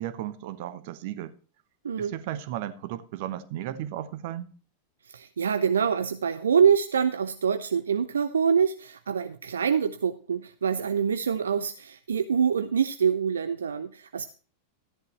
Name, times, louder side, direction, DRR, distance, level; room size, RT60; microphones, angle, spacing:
voice 1, 0.0-1.3 2.0-4.5, right 12 dB, 50° right, 0.8 m, -35 dB
voice 2, 5.1-14.2, right 7 dB, 70° right, 0.5 m, -25 dB
13.5 x 10.5 x 3.1 m
figure-of-eight pair, 90°, 0 cm